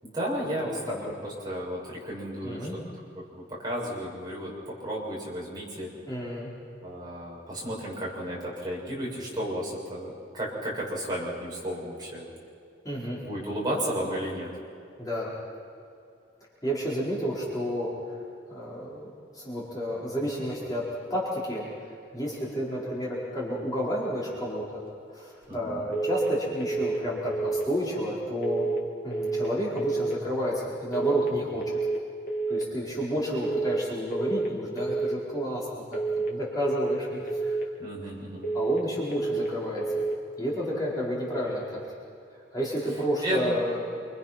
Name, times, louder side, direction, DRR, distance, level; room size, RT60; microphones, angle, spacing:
voice 1, 0.0-2.7 3.3-5.9 6.8-12.3 13.2-14.5 25.5-25.9 37.8-38.5 43.2-43.5, equal, 20° right, -5 dB, 6.6 m, -33 dB
voice 2, 0.6-1.0 2.4-2.7 6.1-6.5 12.8-13.2 15.0-15.3 16.6-17.9 18.5-24.8 25.1-28.7 29.0-31.8 32.5-37.6 38.5-40.1 40.4-41.8 42.5-44.1, equal, 20° left, -7 dB, 4.7 m, -31 dB
sound 1, 25.9-26.3 26.6-27.0 27.3-27.7 28.4-28.8 29.1-29.5 29.8-30.2 30.9-31.3 31.6-32.0 32.3-32.7 33.4-33.8 34.1-34.5 34.8-35.2 35.9-36.3 36.6-37.0 37.3-37.7 38.4-38.8 39.1-39.5 39.8-40.2, right 3 dB, 45° left, 2.9 m, -29 dB
27.5 x 25.5 x 6.0 m, 2.5 s
head